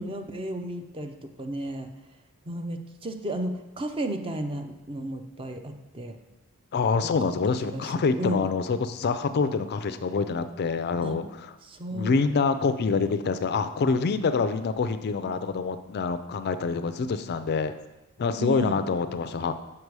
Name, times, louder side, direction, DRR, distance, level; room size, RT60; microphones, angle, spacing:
voice 1, 0.0-1.9 2.4-6.2 7.0-8.5 11.0-11.2 11.6-12.2 18.4-18.8, right 1 dB, 25° right, 6 dB, 0.5 m, -33 dB
voice 2, 6.7-11.2 11.9-17.7 18.2-19.5, left 4 dB, 45° left, 11 dB, 0.4 m, -26 dB
6.6 x 5.7 x 4.7 m, 1.0 s
head